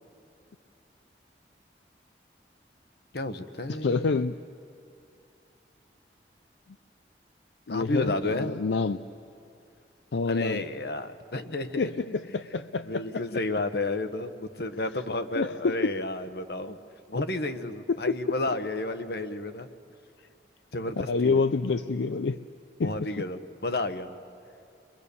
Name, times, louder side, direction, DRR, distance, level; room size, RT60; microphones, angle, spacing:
voice 1, 3.1-4.1 7.7-8.5 10.3-12.2 12.9-16.8 17.1-19.7 20.7-21.4 22.8-24.1, left 2 dB, 60° left, 9 dB, 1.2 m, -32 dB
voice 2, 3.7-4.4 7.7-9.0 10.1-10.6 11.8-13.1 15.4-15.9 18.1-18.2 21.1-22.4 22.8-23.3, left 4 dB, 80° left, 10 dB, 0.5 m, -27 dB
30.0 x 23.0 x 6.9 m, 2.7 s
head